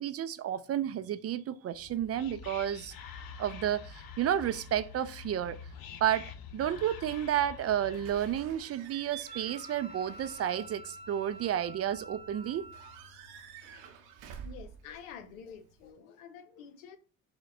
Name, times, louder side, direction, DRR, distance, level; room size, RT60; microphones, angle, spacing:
voice 1, 0.0-2.9 3.4-5.6 6.0-12.7, right 10 dB, 40° right, 0.4 m, -31 dB
Whispering, 1.7-8.7, left 6 dB, 60° left, 0.8 m, -47 dB
Slam / Squeak / Alarm, 7.9-15.9, right 8 dB, 75° right, 0.8 m, -50 dB
Wind instrument woodwind instrument, 9.3-13.0, right 1 dB, 25° left, 0.5 m, -49 dB
voice 2, 14.4-17.0, left 7 dB, 90° left, 0.6 m, -48 dB
5.0 x 2.1 x 4.8 m
hypercardioid pair, 65°, 39 cm